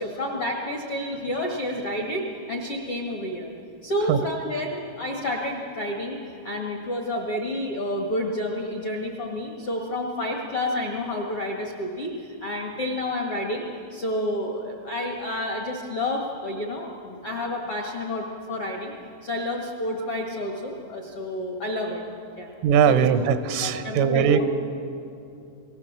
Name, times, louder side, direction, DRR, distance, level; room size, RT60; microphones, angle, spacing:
voice 1, 0.0-3.5 3.8-12.1 12.4-18.9 19.2-22.0 22.4-22.5 22.9-23.2 23.6-24.5, left 1 dB, 65° left, 1 dB, 1.4 m, -30 dB
voice 2, 22.6-24.5, right 8 dB, 85° right, 11 dB, 3.5 m, -20 dB
29.0 x 19.0 x 7.4 m, 2.6 s
omnidirectional pair, 5.6 m